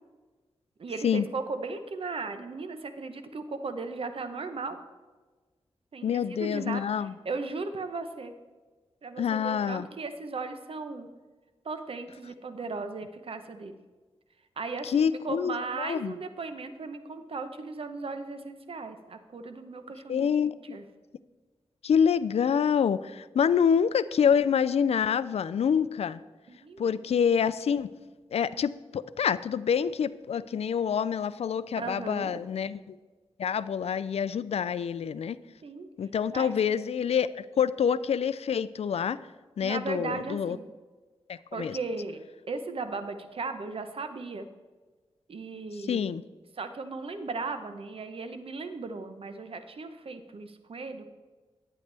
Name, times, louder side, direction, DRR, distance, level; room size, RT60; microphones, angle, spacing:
voice 1, 0.8-4.8 5.9-8.3 9.0-11.1 11.6-13.8 14.6-20.3 20.6-20.8 26.5-27.0 31.8-32.4 35.6-35.9 36.3-36.5 39.6-40.7 41.5-42.2 42.5-44.5 45.3-46.1 46.6-51.0, right 4 dB, 65° right, 8 dB, 0.9 m, -37 dB
voice 2, 6.0-7.1 9.2-9.9 14.8-16.1 20.1-20.8 21.8-26.2 26.8-27.9 28.3-33.0 33.4-35.4 36.0-39.2 39.6-40.6 41.3-41.8 45.9-46.2, left 7 dB, 75° left, 16 dB, 0.4 m, -27 dB
11.5 x 9.4 x 3.4 m, 1.3 s
cardioid pair, 70°, 11 cm